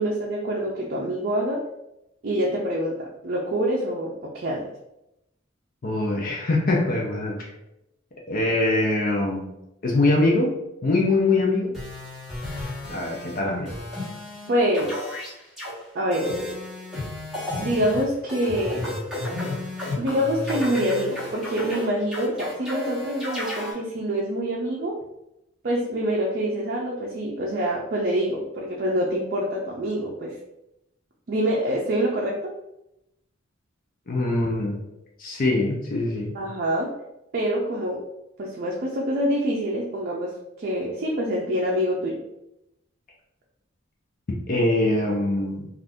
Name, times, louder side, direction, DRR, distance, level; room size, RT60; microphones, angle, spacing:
voice 1, 0.0-1.6 2.2-4.7 14.5-15.2 15.9-16.3 17.6-18.8 20.0-25.0 25.6-30.3 31.3-32.5 36.3-36.9 37.3-38.0 38.4-42.2, equal, 50° right, -3 dB, 0.5 m, -26 dB
voice 2, 5.8-7.4 8.3-9.5 9.8-10.6 10.8-11.7 12.9-13.7 34.1-34.8 35.2-36.4 44.5-45.7, left 2 dB, 45° left, -1 dB, 0.5 m, -23 dB
sound 1, 11.7-13.4 13.6-14.5 14.7-15.7 16.1-23.7, left 1 dB, ahead, 1.1 m, -32 dB
2.5 x 2.4 x 3.4 m, 0.86 s
head